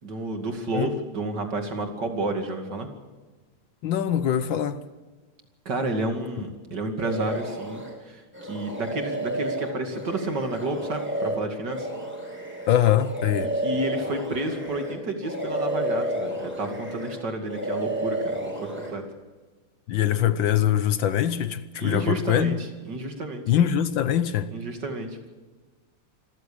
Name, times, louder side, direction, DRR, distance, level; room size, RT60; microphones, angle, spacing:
voice 1, 0.0-2.9 5.7-11.9 13.5-19.0 21.8-23.4 24.5-25.3, right 2 dB, 50° right, 2.9 m, -31 dB
voice 2, 3.8-4.8 12.7-13.5 19.9-22.6 23.5-24.5, left 10 dB, 70° left, 1.5 m, -23 dB
sound 1, 7.0-7.9 8.3-15.0 15.2-17.2 17.5-18.9, right 1 dB, 5° right, 5.4 m, -31 dB
26.0 x 14.5 x 8.6 m
omnidirectional pair, 2.4 m